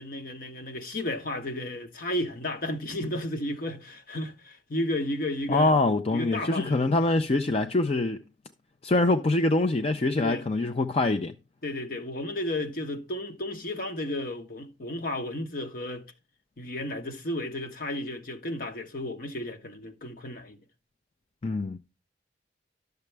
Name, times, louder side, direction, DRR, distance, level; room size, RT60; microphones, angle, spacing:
voice 1, 0.0-5.7 6.1-6.8 10.2-10.4 11.6-16.0 16.6-20.6, left 1 dB, 55° left, 1.2 m, -33 dB
voice 2, 5.5-8.2 8.8-11.3 21.4-21.8, left 2 dB, 35° left, 0.5 m, -24 dB
12.0 x 6.8 x 3.3 m
head